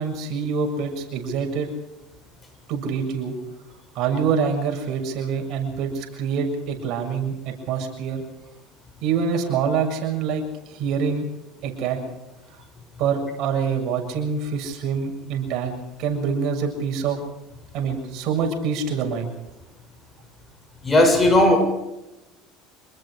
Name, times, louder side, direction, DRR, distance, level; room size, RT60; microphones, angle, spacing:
voice 1, 0.0-1.7 2.7-3.4 4.0-8.2 9.0-11.3 11.6-12.0 13.0-17.2 17.7-19.3, right 6 dB, 60° right, 3 dB, 7.0 m, -25 dB
voice 2, 20.8-21.6, left 1 dB, 20° left, 6 dB, 7.1 m, -15 dB
27.0 x 20.5 x 4.9 m, 0.95 s
supercardioid pair, 100°, 0 cm